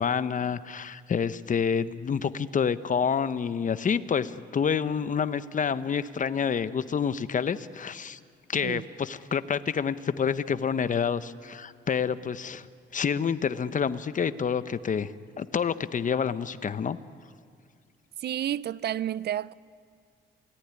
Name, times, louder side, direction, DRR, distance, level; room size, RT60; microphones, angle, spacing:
voice 1, 0.0-8.2 8.5-12.7 12.9-17.0, left 7 dB, 40° left, 1.0 m, -28 dB
voice 2, 8.6-8.9 18.2-19.5, right 11 dB, 55° right, 0.6 m, -31 dB
28.0 x 18.5 x 9.8 m
cardioid pair, 90°, 20 cm